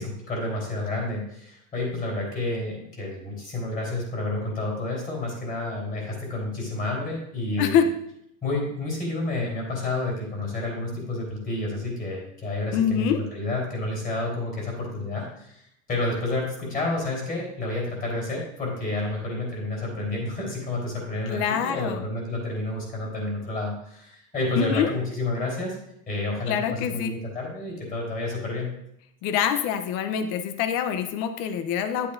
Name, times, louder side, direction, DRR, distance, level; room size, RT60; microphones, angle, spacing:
voice 1, 0.0-7.9 8.4-25.8 26.1-28.7, left 2 dB, 20° left, -2 dB, 3.5 m, -30 dB
voice 2, 12.7-13.2 21.3-22.0 24.5-24.9 26.5-27.2 29.2-32.1, left 8 dB, 50° left, 9 dB, 0.8 m, -25 dB
10.0 x 8.5 x 2.6 m, 0.74 s
supercardioid pair, 140°, 40 cm